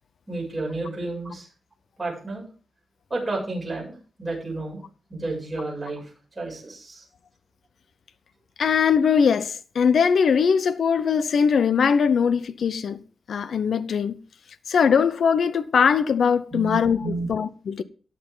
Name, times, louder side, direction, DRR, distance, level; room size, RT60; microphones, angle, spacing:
voice 1, 0.3-1.5 2.0-2.5 3.1-4.8 5.1-7.0 16.5-17.3, right 2 dB, 25° right, 7.1 m, -31 dB
voice 2, 8.6-13.0 13.3-14.2 14.7-17.8, left 6 dB, 65° left, 0.7 m, -21 dB
18.0 x 6.8 x 3.9 m
wide cardioid pair, 155°, 0 cm